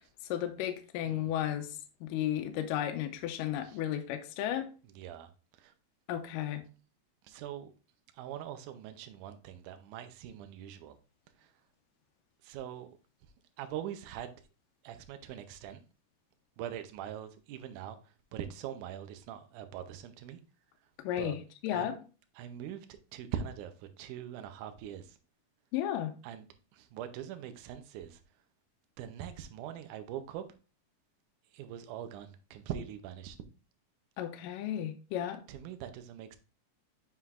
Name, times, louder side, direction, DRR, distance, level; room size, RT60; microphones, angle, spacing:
voice 1, 0.3-1.7 2.0-4.7 6.1-6.6 21.0-22.0 25.7-26.1 34.2-35.4, left 11 dB, 80° left, 2.2 m, -34 dB
voice 2, 5.0-5.3 7.3-7.7 8.2-11.0 12.5-12.9 13.6-14.3 14.8-15.8 16.6-18.0 18.3-20.4 21.2-21.3 21.7-21.9 22.4-22.9 23.1-23.7 24.0-25.1 26.2-26.4 26.8-28.2 29.0-30.4 31.5-33.4 35.5-36.4, right 10 dB, 75° right, 2.0 m, -42 dB
7.8 x 5.6 x 2.4 m
omnidirectional pair, 4.1 m